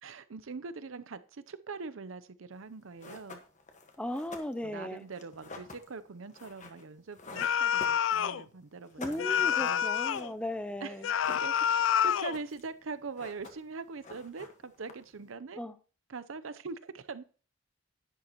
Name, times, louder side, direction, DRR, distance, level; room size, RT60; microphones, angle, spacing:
voice 1, 0.0-3.4 4.6-9.9 10.8-15.6 16.1-17.2, right 4 dB, 80° right, 0.7 m, -43 dB
sound 1, 2.6-2.7 3.0-8.5 8.8-10.6 10.9-11.9 12.1-12.7 13.0-13.8 14.0-15.2, left 2 dB, 35° left, 1.3 m, -48 dB
voice 2, 4.0-5.0 9.0-11.0 15.6-15.7, left 1 dB, 5° left, 0.5 m, -36 dB
sound 2, 7.4-8.4 9.2-10.3 11.0-12.4, left 9 dB, 70° left, 0.4 m, -28 dB
11.0 x 10.5 x 2.9 m
head